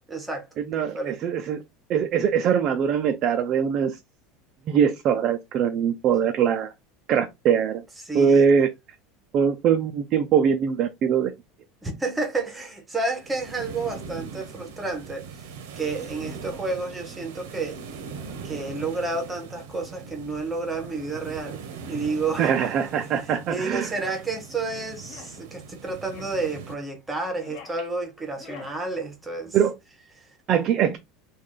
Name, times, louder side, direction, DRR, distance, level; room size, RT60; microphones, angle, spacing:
voice 1, 0.1-0.5 0.7-1.2 8.0-8.5 11.8-15.2 15.8-17.8 18.4-22.5 22.8-22.9 23.5-29.6 30.2-30.3, right 3 dB, 5° right, 0.7 m, -30 dB
voice 2, 0.7-1.6 1.9-4.0 4.7-6.7 7.1-7.8 8.1-8.7 9.3-11.3 22.4-23.9 29.5-29.7 30.5-31.0, right 7 dB, 30° right, 0.3 m, -22 dB
sound 1, 13.2-26.8, right 5 dB, 90° right, 0.8 m, -40 dB
sound 2, 23.8-24.2 25.0-25.4 26.1-26.4 27.2-27.8 28.3-28.8, left 7 dB, 45° left, 0.8 m, -45 dB
3.2 x 2.3 x 3.7 m
cardioid pair, 180°, 0 cm